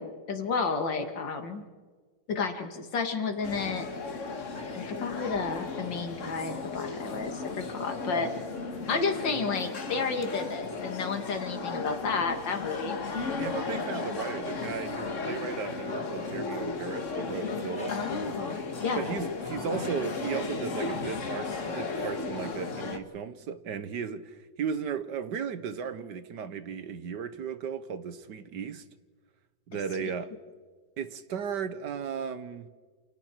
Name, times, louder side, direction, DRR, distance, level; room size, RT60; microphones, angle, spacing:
voice 1, 0.0-1.6 2.3-3.9 4.7-8.3 8.9-13.0 17.9-19.1 29.7-30.1, left 4 dB, 85° left, 6 dB, 2.8 m, -32 dB
sound 1, 3.4-23.0, left 4 dB, 45° left, 1.8 m, -35 dB
voice 2, 13.4-17.9 19.0-28.8 29.7-30.3 31.0-32.7, right 7 dB, 70° right, 12 dB, 1.7 m, -35 dB
28.5 x 28.0 x 4.5 m, 1.5 s
omnidirectional pair, 1.9 m